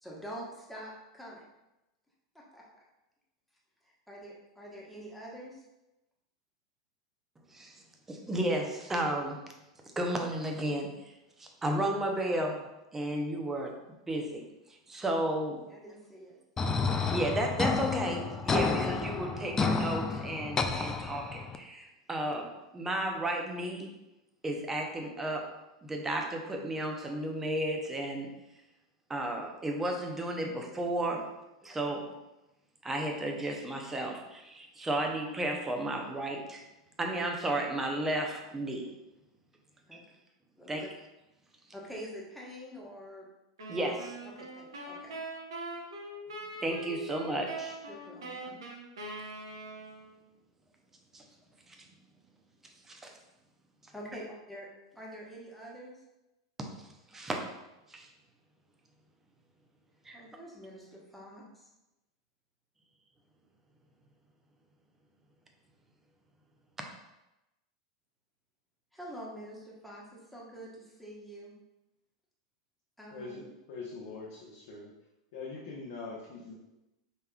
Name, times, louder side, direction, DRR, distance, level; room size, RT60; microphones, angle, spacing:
voice 1, 0.0-1.4 2.5-2.6 3.8-5.6 15.7-16.4 39.9-40.0 40.6-40.9 41.7-43.2 44.4-45.2 47.9-48.6 53.9-54.7 54.9-56.0 60.1-61.6 68.9-71.5 73.0-73.5, equal, ahead, -5 dB, 1.3 m, -46 dB
voice 2, 8.1-9.4 10.0-10.9 11.4-12.6 12.9-13.7 14.1-14.4 14.9-15.6 17.1-23.9 24.4-25.5 25.8-28.3 29.1-31.3 31.6-32.1 32.8-36.6 37.0-38.9 40.7-40.8 43.7-44.1 46.6-47.7 51.1-51.2 51.7-51.8 52.9-53.1 56.6-56.7 57.1-57.4 57.9-58.1 60.1-60.2, right 1 dB, 15° right, 2 dB, 0.7 m, -33 dB
sound 1, 16.6-21.6, left 4 dB, 20° left, 0.4 m, -30 dB
sound 2, 43.6-50.2, right 2 dB, 70° right, 0.8 m, -42 dB
voice 3, 73.1-74.9 75.3-76.5, left 4 dB, 60° left, -4 dB, 0.8 m, -43 dB
5.3 x 3.3 x 2.3 m, 0.96 s
figure-of-eight pair, 85°, 2 cm